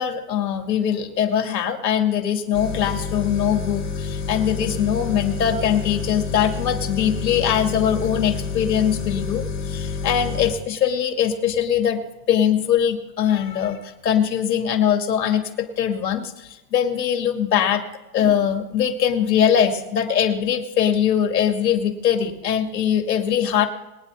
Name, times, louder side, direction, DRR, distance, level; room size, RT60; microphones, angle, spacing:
voice 1, 0.0-12.0 12.3-16.3 16.7-17.8 18.1-23.7, left 9 dB, 90° left, 4 dB, 2.5 m, -21 dB
sound 1, 2.5-10.5, left 5 dB, 30° left, 6.1 m, -29 dB
23.0 x 10.0 x 3.6 m, 1.0 s
supercardioid pair, 140°, 49 cm